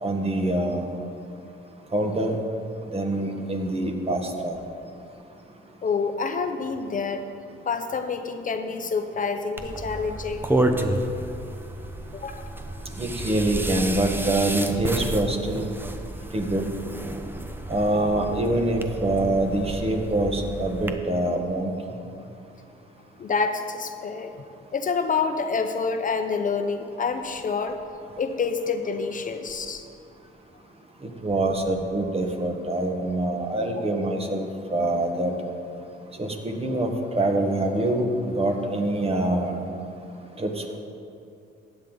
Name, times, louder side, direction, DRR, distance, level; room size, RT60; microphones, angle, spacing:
voice 1, 0.0-0.8 1.9-2.4 2.9-4.6 13.0-15.7 16.3-16.7 17.7-21.7 31.2-35.3 36.2-39.6 40.4-40.8, right 1 dB, 30° right, 3 dB, 1.5 m, -25 dB
voice 2, 5.8-7.2 7.7-10.5 12.1-12.5 23.2-24.3 24.7-27.8 28.2-29.9, left 5 dB, 40° left, 7 dB, 0.8 m, -27 dB
sound 1, 9.6-20.9, right 1 dB, 10° right, 0.8 m, -31 dB
15.0 x 9.2 x 4.0 m, 2.6 s
cardioid pair, 90°, 20 cm